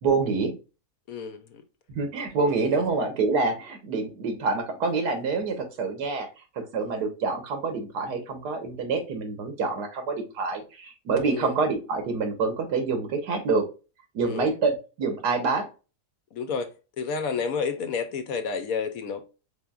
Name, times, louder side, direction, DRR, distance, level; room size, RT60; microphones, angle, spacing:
voice 1, 0.0-0.5 1.9-6.3 6.6-13.7 14.1-15.7, right 4 dB, 85° right, 1.6 m, -27 dB
voice 2, 1.1-1.6 2.8-2.9 11.3-11.5 14.2-14.5 16.3-16.7 17.0-19.2, left 5 dB, 70° left, 1.0 m, -30 dB
4.5 x 3.4 x 2.3 m
omnidirectional pair, 1.7 m